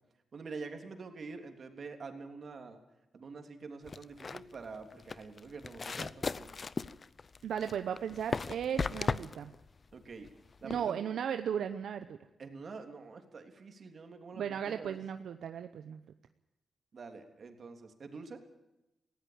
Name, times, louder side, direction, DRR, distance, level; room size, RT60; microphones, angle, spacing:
voice 1, 0.3-2.8 3.1-6.5 9.9-10.3 10.6-11.1 12.4-15.0 16.9-18.4, right 4 dB, 60° right, 5 dB, 3.3 m, -46 dB
sound 1, 3.9-10.9, left 4 dB, 45° left, 0.7 m, -37 dB
voice 2, 7.4-9.5 10.6-12.2 14.3-16.0, right 8 dB, 85° right, 9 dB, 0.8 m, -36 dB
19.0 x 16.0 x 8.8 m, 0.95 s
cardioid pair, 70°, 0 cm